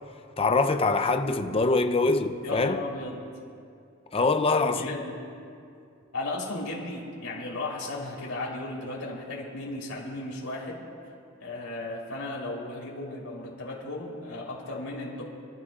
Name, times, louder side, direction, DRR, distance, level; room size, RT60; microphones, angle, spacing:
voice 1, 0.4-2.8 4.1-4.9, left 3 dB, 25° left, 0.6 m, -24 dB
voice 2, 2.4-3.2 4.5-5.1 6.1-10.8 11.4-15.2, left 2 dB, 85° left, 3.7 m, -35 dB
28.5 x 13.5 x 2.5 m
head